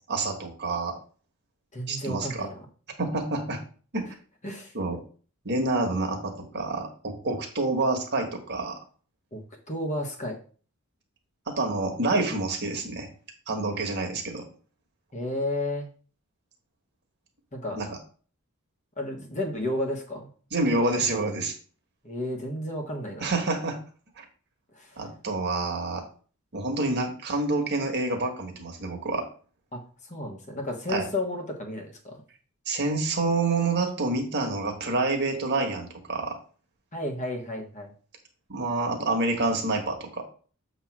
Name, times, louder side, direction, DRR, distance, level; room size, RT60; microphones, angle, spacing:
voice 1, 0.1-1.0 1.9-2.5 3.0-3.6 3.9-4.1 4.7-5.0 5.4-8.8 11.5-13.1 13.5-14.4 17.7-17.9 20.5-21.5 23.2-23.8 24.2-24.3 25.0-26.0 26.5-29.2 30.9-31.0 32.7-36.4 38.5-40.2, right 2 dB, 50° right, 3 dB, 1.5 m, -27 dB
voice 2, 1.7-2.6 4.4-4.7 9.3-10.4 15.1-15.9 17.5-17.8 19.0-20.3 22.0-23.3 24.7-25.0 29.7-32.2 36.9-37.9, left 1 dB, 30° left, 2 dB, 1.3 m, -32 dB
7.3 x 3.2 x 6.1 m, 0.41 s
head